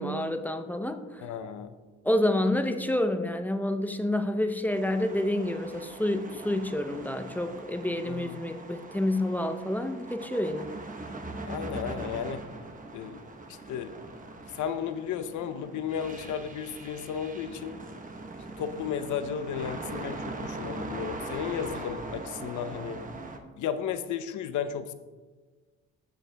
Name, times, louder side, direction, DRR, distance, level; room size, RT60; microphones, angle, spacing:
voice 1, 0.0-1.2 2.0-10.7, left 1 dB, 5° left, 7 dB, 0.6 m, -28 dB
voice 2, 1.2-1.7 8.0-8.4 11.4-12.4 12.9-13.2 13.5-13.9 14.5-17.8 18.6-23.0 23.6-24.9, left 8 dB, 75° left, 11 dB, 0.7 m, -34 dB
sound 1, 4.7-23.4, right 2 dB, 25° right, 0.9 m, -41 dB
15.0 x 6.4 x 2.2 m, 1.3 s
cardioid pair, 90°, 30 cm